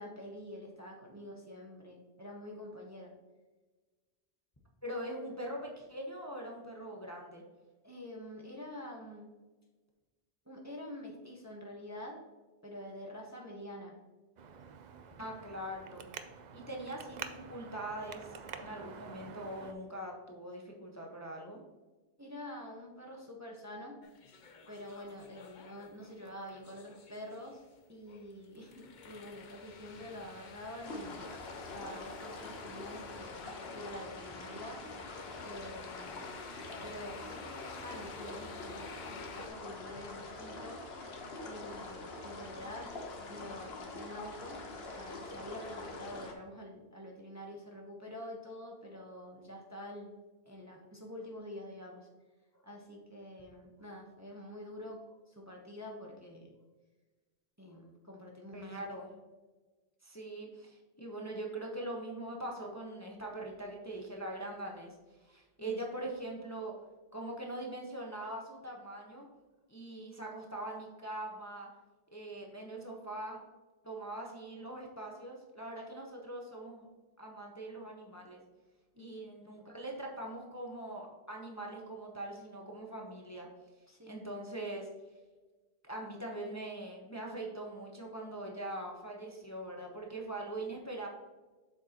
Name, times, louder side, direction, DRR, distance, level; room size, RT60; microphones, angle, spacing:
voice 1, 0.0-3.1 7.8-9.3 10.4-12.2 12.6-14.0 22.2-24.0 24.7-27.6 27.9-31.4 31.7-33.4 33.7-34.8 35.4-36.3 36.8-40.8 41.4-42.9 43.3-44.6 44.9-52.1 52.5-56.7 57.6-58.8 65.2-65.7 78.9-79.2 83.9-84.3, left 1 dB, 15° right, -1 dB, 1.1 m, -47 dB
voice 2, 4.8-7.4 15.2-16.0 16.5-21.6 58.5-59.1 60.0-65.0 65.3-66.7 67.1-69.3 69.7-71.7 72.1-73.4 73.8-76.9 77.2-78.4 79.0-83.5 84.1-84.9 85.8-91.1, right 1 dB, 15° left, -1 dB, 1.0 m, -42 dB
Traffic noise roadway noise, 14.4-19.7, right 6 dB, 50° right, 0.6 m, -48 dB
sound 1, 24.0-39.5, left 5 dB, 50° left, 0.8 m, -52 dB
sound 2, 30.8-46.3, left 3 dB, 70° left, 1.3 m, -45 dB
7.7 x 6.4 x 2.9 m, 1.2 s
omnidirectional pair, 1.1 m